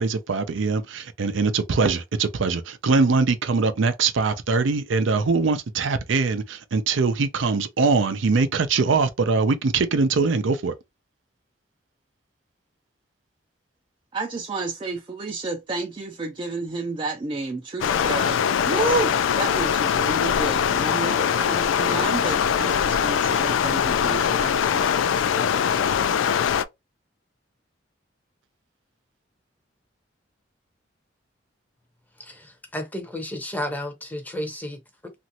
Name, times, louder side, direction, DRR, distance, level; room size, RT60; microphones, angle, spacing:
voice 1, 0.0-10.8, right 4 dB, 80° right, 0.5 m, -22 dB
voice 2, 14.1-24.9, right 3 dB, 25° right, 0.4 m, -30 dB
Stream, 17.8-26.6, left 8 dB, 90° left, 0.3 m, -22 dB
voice 3, 32.2-35.1, left 1 dB, 10° left, 0.6 m, -33 dB
3.0 x 2.5 x 2.7 m
head